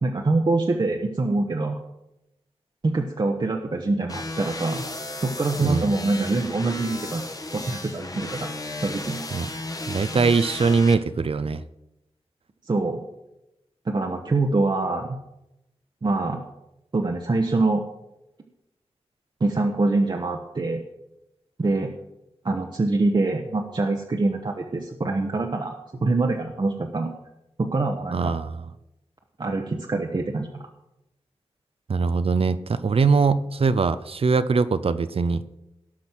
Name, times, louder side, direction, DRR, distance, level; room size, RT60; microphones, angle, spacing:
voice 1, 0.0-1.8 2.8-4.8 5.2-7.2 7.5-8.5 8.8-9.2 12.7-13.0 13.8-15.2 16.0-16.4 16.9-17.8 19.4-20.8 21.6-21.9 22.4-27.1 27.6-28.3 29.4-30.7, right 2 dB, 45° right, 2 dB, 1.0 m, -24 dB
sound 1, 4.1-10.9, left 2 dB, 35° left, 1.3 m, -34 dB
voice 2, 9.9-11.6 28.1-28.5 31.9-35.4, right 4 dB, 65° right, 13 dB, 0.6 m, -22 dB
17.5 x 6.3 x 6.1 m, 0.90 s
wide cardioid pair, 105°, 11 cm